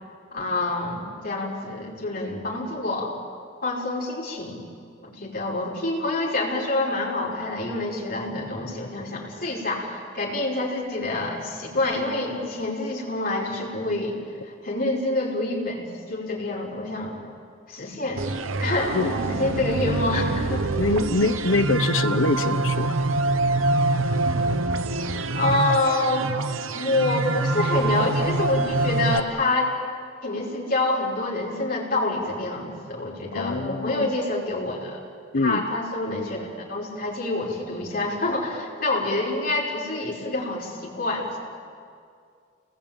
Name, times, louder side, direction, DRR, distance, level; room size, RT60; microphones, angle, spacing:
voice 1, 0.3-3.1 3.6-4.7 5.0-14.2 14.5-17.2 17.7-18.2 18.6-20.7 25.3-26.3 26.7-29.7 30.2-35.0 35.3-41.4, left 2 dB, 45° left, -3 dB, 5.4 m, -27 dB
sound 1, 18.2-29.2, right 2 dB, 90° right, 1.0 m, -25 dB
voice 2, 20.8-23.0 33.3-34.1 35.3-35.6, left 2 dB, 80° left, 8 dB, 1.0 m, -24 dB
29.5 x 20.0 x 9.0 m, 2.3 s
head